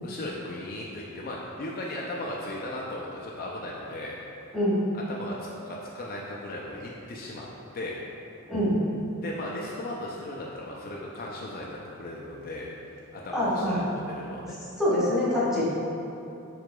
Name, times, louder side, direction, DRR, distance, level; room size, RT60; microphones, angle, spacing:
voice 1, 0.0-4.2 4.9-7.5 7.7-8.0 9.2-14.6, left 1 dB, 40° left, -3 dB, 0.4 m, -37 dB
voice 2, 13.3-13.8 14.8-15.6, left 1 dB, ahead, -10 dB, 1.1 m, -24 dB
4.9 x 4.6 x 2.2 m, 2.8 s
head